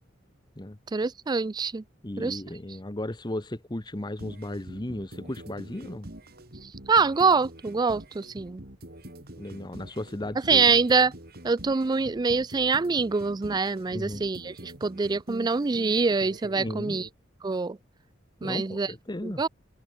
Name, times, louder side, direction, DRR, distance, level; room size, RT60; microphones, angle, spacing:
voice 1, 0.9-1.8 2.2-2.4 6.6-8.6 10.5-11.1 11.4-17.1 17.4-17.8 18.4-18.9 19.2-19.5, right 4 dB, 20° right, 0.4 m, -25 dB
voice 2, 2.0-6.1 9.4-10.8 13.9-14.2 16.6-17.0 18.4-19.4, left 1 dB, 20° left, 1.0 m, -35 dB
sound 1, 4.2-17.1, right 1 dB, 50° right, 4.5 m, -45 dB
open air
head